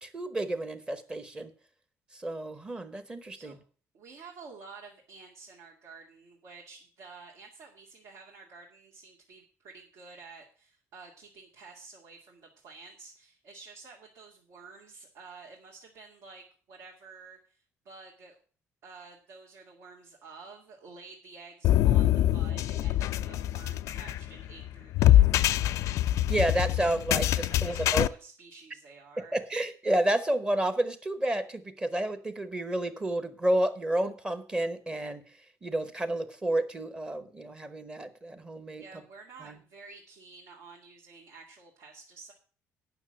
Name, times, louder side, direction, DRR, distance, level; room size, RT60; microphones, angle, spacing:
voice 1, 0.0-1.5 2.2-3.6 26.3-28.1 29.3-35.2 35.6-38.8 39.4-39.6, right 1 dB, 15° right, 11 dB, 0.9 m, -30 dB
voice 2, 3.9-18.3 18.8-25.6 27.5-29.4 38.8-42.3, right 4 dB, 70° right, -2 dB, 2.2 m, -50 dB
sound 1, 21.6-28.1, left 13 dB, 65° left, 0.4 m, -24 dB
9.8 x 6.1 x 7.6 m, 0.41 s
cardioid pair, 175°, 6 cm